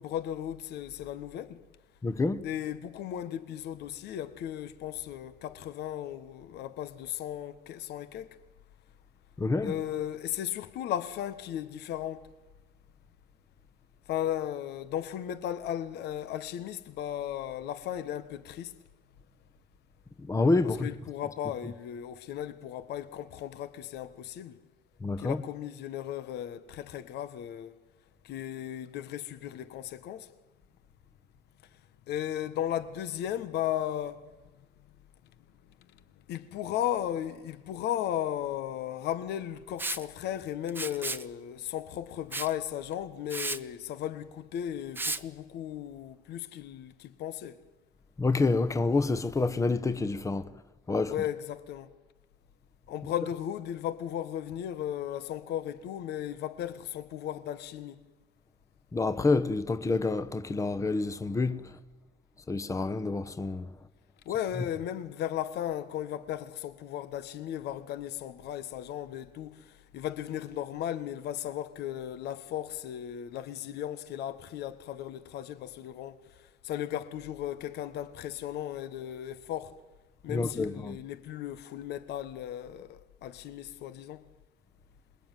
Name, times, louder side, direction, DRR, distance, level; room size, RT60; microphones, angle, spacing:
voice 1, 0.0-1.6 2.4-8.3 9.6-12.2 14.1-18.7 20.6-24.5 25.2-27.7 28.2-30.3 32.1-34.2 36.3-47.6 51.1-51.9 52.9-58.0 64.2-69.6 69.9-76.2 76.6-79.7 80.2-84.2, left 11 dB, 75° left, 1.5 m, -36 dB
voice 2, 2.0-2.4 9.4-9.8 20.2-20.9 25.0-25.4 48.2-50.5 50.9-51.2 58.9-61.7 62.5-63.7 80.3-81.0, left 3 dB, 20° left, 1.1 m, -28 dB
Liquid, 39.8-40.0 40.7-41.2 42.3-42.5 42.9-43.0 43.3-43.6 44.9-45.2, right 2 dB, 10° right, 0.9 m, -33 dB
27.0 x 21.0 x 9.3 m
cardioid pair, 110°, 17 cm